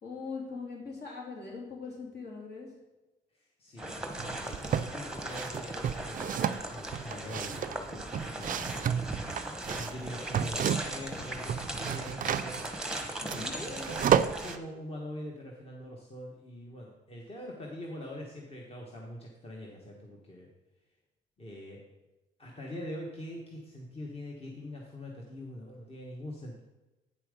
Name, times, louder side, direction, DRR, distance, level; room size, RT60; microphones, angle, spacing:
voice 1, 0.0-2.7 13.2-13.5, left 4 dB, 55° left, -2 dB, 3.1 m, -41 dB
voice 2, 3.3-8.7 9.6-12.6 13.3-20.5 21.4-21.8 22.4-26.6, left 1 dB, 30° left, -1 dB, 1.5 m, -43 dB
sound 1, 3.8-14.6, right 1 dB, 5° right, 1.1 m, -38 dB
sound 2, 4.2-4.9 5.3-11.1 11.4-14.6, right 9 dB, 45° right, 0.4 m, -31 dB
8.6 x 5.8 x 5.1 m, 1.1 s
cardioid pair, 90°, 20 cm